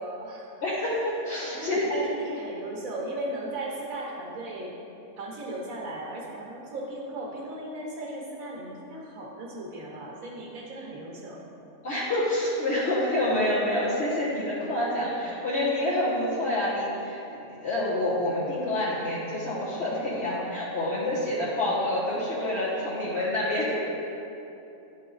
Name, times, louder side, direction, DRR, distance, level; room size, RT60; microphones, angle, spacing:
voice 1, 0.0-0.5 1.5-4.8 5.2-11.4, right 1 dB, 65° right, -2 dB, 1.6 m, -36 dB
voice 2, 0.6-2.0 11.8-17.2 17.6-23.9, left 1 dB, 50° left, -10 dB, 1.4 m, -27 dB
10.5 x 4.2 x 3.9 m, 2.9 s
omnidirectional pair, 1.6 m